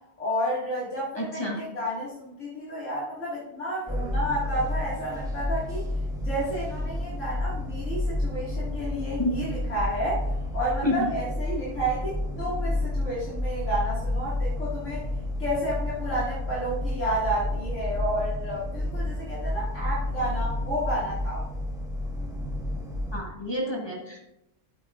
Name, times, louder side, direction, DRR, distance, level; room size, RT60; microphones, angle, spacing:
voice 1, 0.2-5.9 6.2-10.2 10.5-15.0 15.4-21.4, right 1 dB, 65° left, -8 dB, 2.5 m, -31 dB
voice 2, 1.1-1.6 9.2-9.3 10.8-11.1 23.1-24.2, left 1 dB, 20° left, -2 dB, 1.4 m, -29 dB
sound 1, 3.9-23.2, left 1 dB, 5° right, 1.4 m, -30 dB
12.0 x 8.5 x 2.5 m, 0.87 s
omnidirectional pair, 1.4 m